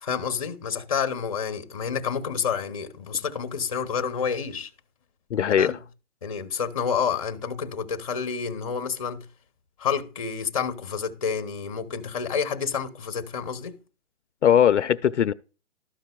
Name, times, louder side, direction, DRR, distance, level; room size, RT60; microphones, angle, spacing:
voice 1, 0.0-4.7 5.6-5.7 6.2-9.2 9.8-13.7, left 6 dB, 30° left, 0.8 m, -29 dB
voice 2, 5.3-5.8 14.4-15.3, left 9 dB, 75° left, 0.5 m, -20 dB
13.0 x 5.4 x 2.3 m
hypercardioid pair, 170°, 36 cm